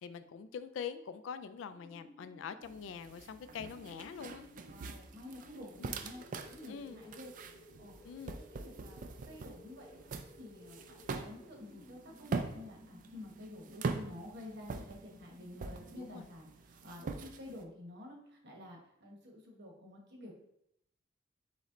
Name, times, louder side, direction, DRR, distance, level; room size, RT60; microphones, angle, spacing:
voice 1, 0.0-4.5 5.8-5.9 6.7-7.0 8.0-8.4 16.0-16.2, left 7 dB, 70° left, 12 dB, 0.3 m, -44 dB
sound 1, 1.7-16.6, left 1 dB, 5° left, 0.5 m, -58 dB
sound 2, 2.6-17.6, right 4 dB, 40° right, 0.3 m, -44 dB
voice 2, 4.7-7.3 7.8-8.0 8.3-10.0 10.4-20.3, left 1 dB, 60° right, 0 dB, 1.1 m, -50 dB
4.1 x 3.2 x 3.7 m, 0.76 s
head